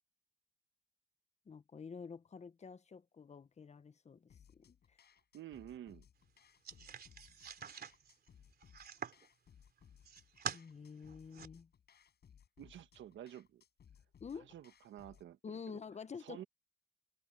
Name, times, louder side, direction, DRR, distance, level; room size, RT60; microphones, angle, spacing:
voice 1, 1.5-5.0 10.5-11.7 14.2-14.5 15.4-16.4, left 6 dB, 35° left, 1.2 m, -49 dB
sound 1, 4.3-15.3, left 8 dB, 55° left, 6.4 m, -64 dB
voice 2, 5.3-6.0 12.6-13.6 14.3-15.8 16.2-16.4, right 11 dB, 70° right, 1.4 m, -51 dB
sound 2, 6.6-9.3 9.8-10.6 11.1-11.5, right 7 dB, 50° right, 3.4 m, -46 dB
cardioid pair, 90°, 20 cm